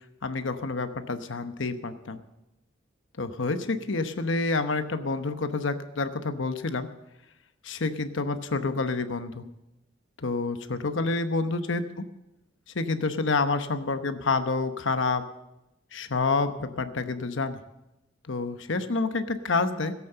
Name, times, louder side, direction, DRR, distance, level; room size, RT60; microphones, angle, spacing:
voice 1, 0.2-2.2 3.2-6.9 7.6-9.5 10.2-11.8 12.7-15.2 15.9-17.6 18.3-19.9, left 3 dB, 75° left, 9 dB, 1.0 m, -28 dB
16.0 x 8.5 x 6.7 m, 0.95 s
head